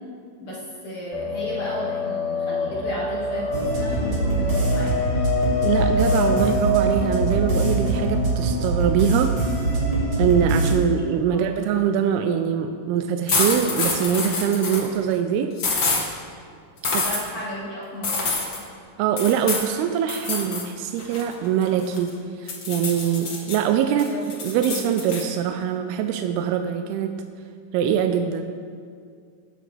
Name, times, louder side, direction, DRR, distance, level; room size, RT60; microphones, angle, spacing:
voice 1, 0.4-5.2 11.3-11.4 16.9-18.4 23.9-24.2 24.5-24.7, equal, 40° left, -7 dB, 2.3 m, -34 dB
sound 1, 1.1-10.4, left 2 dB, 60° left, 2.0 m, -28 dB
sound 2, 3.5-10.7, right 2 dB, 45° right, 1.7 m, -23 dB
voice 2, 5.6-9.4 10.2-15.5 16.9-17.0 19.0-24.2 24.4-27.3 27.7-28.4, right 8 dB, 85° right, 6 dB, 2.4 m, -23 dB
sound 3, 13.3-14.9 15.6-16.0 16.8-17.2 18.0-18.6 19.2-19.7 20.1-20.7 21.0-22.1 22.5-23.6 24.0-25.2, left 3 dB, 85° left, 1.0 m, -26 dB
18.5 x 8.3 x 3.3 m, 2.2 s
omnidirectional pair, 4.6 m